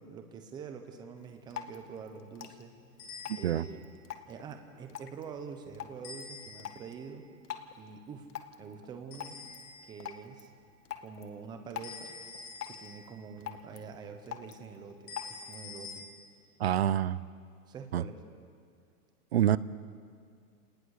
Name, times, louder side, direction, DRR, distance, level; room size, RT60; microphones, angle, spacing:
voice 1, 0.0-2.7 3.3-3.9 4.3-7.2 7.7-8.3 8.6-9.4 9.8-10.5 11.0-12.2 12.7-16.1 17.6-18.2, right 6 dB, 10° right, 6 dB, 0.9 m, -45 dB
Drip, 1.2-15.7, left 9 dB, 75° left, 1.9 m, -47 dB
sound 1, 3.0-3.8 6.0-6.9 9.1-10.0 11.8-13.3 15.1-16.0, left 4 dB, 20° left, 6.0 m, -46 dB
voice 2, 3.3-3.6 16.6-17.2 17.9-18.0 19.3-19.6, right 11 dB, 45° right, 18 dB, 0.5 m, -27 dB
28.0 x 19.5 x 6.6 m, 2.1 s
hypercardioid pair, 160°, 46 cm